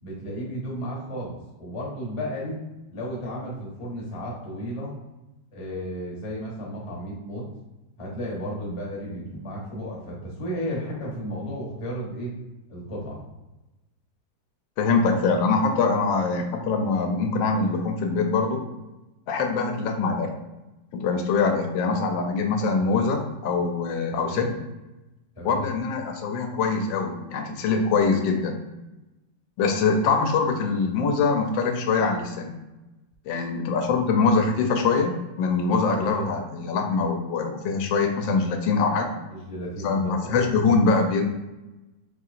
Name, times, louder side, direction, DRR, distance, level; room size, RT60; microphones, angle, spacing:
voice 1, 0.0-2.6 2.9-4.9 5.5-7.5 8.0-12.3 12.7-13.2 24.1-24.5 25.4-25.7 36.0-36.3 39.3-40.5, equal, 30° left, -4 dB, 0.6 m, -33 dB
voice 2, 14.8-18.6 19.3-20.3 20.9-24.5 25.4-28.6 29.6-32.6 33.3-39.1 39.8-41.2, left 4 dB, 85° left, 4 dB, 1.3 m, -23 dB
4.2 x 2.8 x 2.4 m, 1.0 s
omnidirectional pair, 2.0 m